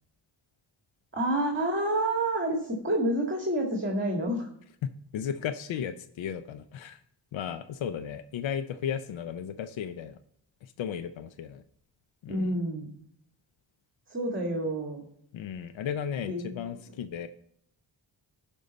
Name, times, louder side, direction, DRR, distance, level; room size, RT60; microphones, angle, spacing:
voice 1, 1.1-4.5 12.3-12.9 14.1-15.1 16.3-16.8, right 1 dB, 25° right, 1 dB, 1.7 m, -29 dB
voice 2, 5.1-7.0 7.3-10.2 10.6-11.6 12.2-12.6 15.3-17.3, left 8 dB, 85° left, 11 dB, 0.6 m, -35 dB
11.5 x 5.4 x 4.0 m, 0.70 s
cardioid pair, 75°, 45 cm